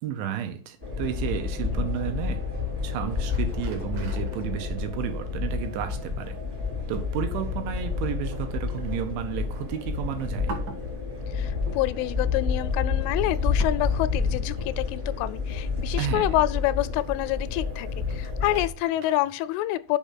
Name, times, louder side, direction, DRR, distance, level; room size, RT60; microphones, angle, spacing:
voice 1, 0.0-2.4 2.8-6.4 6.9-10.6 16.0-16.4, right 10 dB, 75° right, 3.2 m, -32 dB
sound 1, 0.8-18.7, left 5 dB, 25° right, 1.0 m, -29 dB
sound 2, 2.6-5.4, left 6 dB, 60° left, 1.2 m, -45 dB
sound 3, 3.3-19.4, right 3 dB, 60° right, 2.6 m, -48 dB
voice 2, 11.3-20.0, left 15 dB, 85° left, 3.0 m, -27 dB
7.4 x 5.2 x 7.3 m
omnidirectional pair, 5.6 m